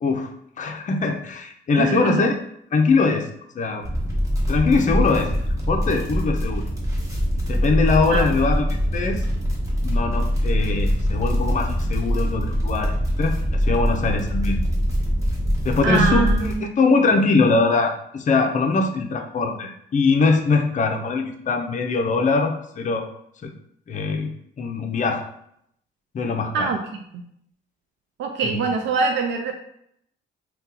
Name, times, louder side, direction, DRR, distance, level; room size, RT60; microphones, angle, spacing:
voice 1, 0.0-2.4 2.7-3.3 3.6-3.8 4.5-5.3 5.7-6.6 7.5-9.2 9.8-14.6 15.6-23.1 23.4-23.5 23.9-24.3 24.6-25.3 26.1-26.7 28.4-28.6, left 4 dB, 40° left, 5 dB, 0.5 m, -22 dB
voice 2, 1.8-2.3 8.1-8.4 15.8-16.7 26.5-27.0 28.2-29.5, right 4 dB, 70° right, 3 dB, 0.4 m, -24 dB
sound 1, 3.8-16.5, equal, 15° right, 1.0 m, -23 dB
2.7 x 2.3 x 3.7 m, 0.72 s
cardioid pair, 90°, 20 cm